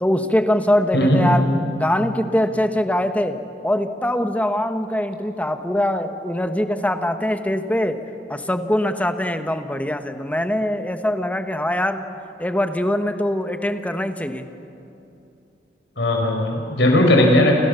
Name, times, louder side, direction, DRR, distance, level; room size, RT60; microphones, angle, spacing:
voice 1, 0.0-3.4 3.6-8.0 8.3-12.1 12.4-14.5, left 1 dB, 10° left, 8 dB, 1.3 m, -22 dB
voice 2, 16.0-17.5, left 1 dB, 75° left, 1 dB, 5.9 m, -17 dB
30.0 x 28.0 x 7.0 m, 2.8 s
head